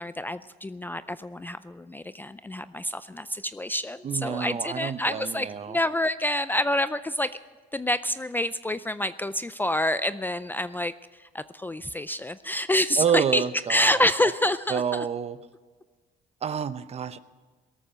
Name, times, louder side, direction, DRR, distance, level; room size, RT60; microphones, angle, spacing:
voice 1, 0.0-7.3 7.7-10.9 11.3-13.4 13.7-15.1, left 1 dB, 10° left, 13 dB, 0.4 m, -27 dB
voice 2, 4.0-5.8 13.0-14.0 14.7-15.4 16.4-17.2, right 7 dB, 40° right, 13 dB, 0.8 m, -28 dB
18.0 x 13.5 x 5.1 m, 1.4 s
cardioid pair, 110°, 17 cm